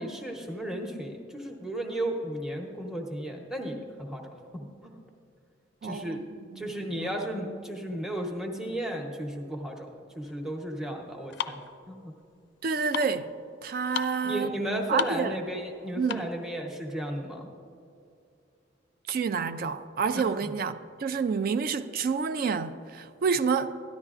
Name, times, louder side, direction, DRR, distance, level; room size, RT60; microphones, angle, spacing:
voice 1, 0.0-5.0 5.8-9.9 10.2-11.6 11.9-12.1 14.2-17.5 20.1-20.3, right 1 dB, ahead, 0.8 m, -34 dB
voice 2, 5.8-6.2 6.5-6.6 6.9-7.1 12.6-13.3 13.6-14.6 14.9-15.4 16.0-16.3 19.1-23.7, right 5 dB, 45° right, 0.3 m, -29 dB
sound 1, 10.2-16.5, left 7 dB, 60° left, 0.4 m, -38 dB
13.0 x 11.0 x 2.4 m
head